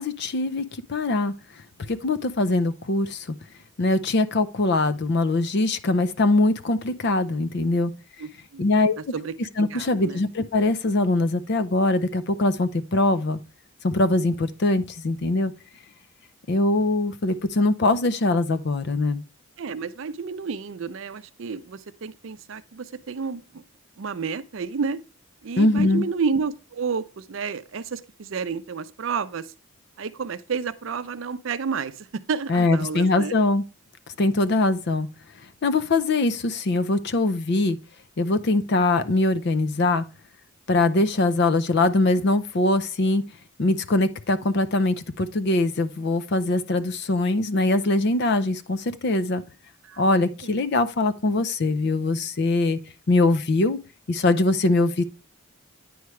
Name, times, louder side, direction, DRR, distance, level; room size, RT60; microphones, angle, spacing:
voice 1, 0.0-1.3 1.9-3.3 3.8-7.9 8.6-9.0 9.6-13.4 13.8-15.5 16.5-19.2 25.6-26.1 32.5-33.6 34.2-35.1 35.6-37.8 38.2-40.0 40.7-43.2 43.6-49.4 50.0-52.8 53.1-53.8 54.1-55.0, left 2 dB, 50° left, 0.5 m, -22 dB
voice 2, 8.2-8.7 9.1-9.4 9.7-10.2 19.6-23.6 24.0-25.0 25.4-29.5 30.0-33.3 49.8-50.0 50.4-50.6, right 5 dB, 65° right, 0.5 m, -30 dB
9.3 x 4.7 x 3.1 m
head